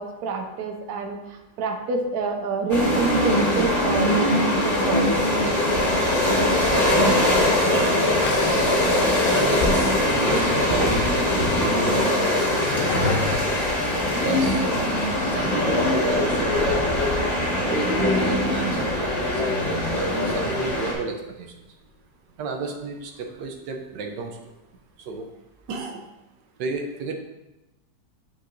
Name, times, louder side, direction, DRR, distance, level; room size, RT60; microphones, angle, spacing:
voice 1, 0.0-5.3, right 3 dB, 65° right, 3 dB, 1.2 m, -27 dB
sound 1, 2.7-20.9, left 1 dB, 40° left, 2.0 m, -22 dB
voice 2, 7.7-8.0 8.5-9.0 9.3-11.0 11.6-13.2 14.2-14.6 15.3-16.9 17.6-19.4 19.9-21.5 22.4-24.3 25.1-25.3 25.7-26.0 26.6-27.1, right 4 dB, 80° right, 4 dB, 1.3 m, -32 dB
sound 2, 8.2-13.6, left 5 dB, 80° left, 1.3 m, -34 dB
sound 3, 9.5-21.6 21.9-22.0 22.8-22.9 23.1-23.2 23.5-23.6, left 2 dB, 25° left, 1.4 m, -36 dB
9.0 x 4.7 x 2.6 m, 0.98 s
omnidirectional pair, 1.9 m